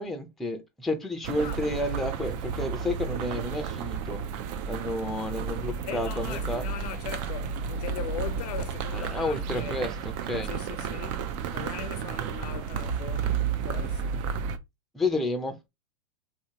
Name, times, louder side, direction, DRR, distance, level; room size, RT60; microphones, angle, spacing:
voice 1, 0.0-4.2 4.7-6.7 8.9-10.5 14.9-15.7, left 2 dB, ahead, 0.5 m, -31 dB
sound 1, 1.2-14.6, right 6 dB, 50° right, 0.5 m, -32 dB
voice 2, 5.8-9.7 10.4-14.4, left 9 dB, 70° left, 0.6 m, -40 dB
3.0 x 2.8 x 2.8 m
hypercardioid pair, 120°, 20 cm